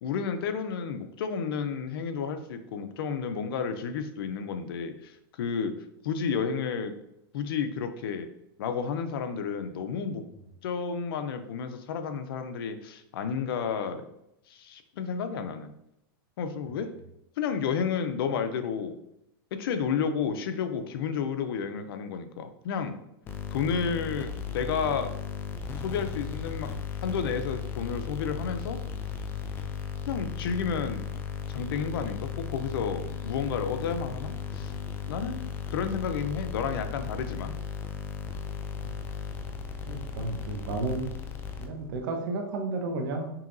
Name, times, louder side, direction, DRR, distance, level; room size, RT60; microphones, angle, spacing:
voice 1, 0.0-5.7 6.0-6.9 7.3-8.3 8.6-10.2 10.6-14.1 14.5-15.7 16.4-16.9 17.4-19.0 19.5-23.0 23.5-25.1 25.8-26.7 27.0-28.8 30.1-31.0 31.5-34.7 35.1-37.5, left 6 dB, 70° left, 8 dB, 0.5 m, -31 dB
sound 1, 23.3-42.0, left 6 dB, 15° left, 0.3 m, -36 dB
voice 2, 39.9-41.1 41.6-43.3, right 2 dB, 60° right, 4 dB, 0.9 m, -32 dB
5.6 x 2.7 x 2.6 m, 0.81 s
supercardioid pair, 150°, 13 cm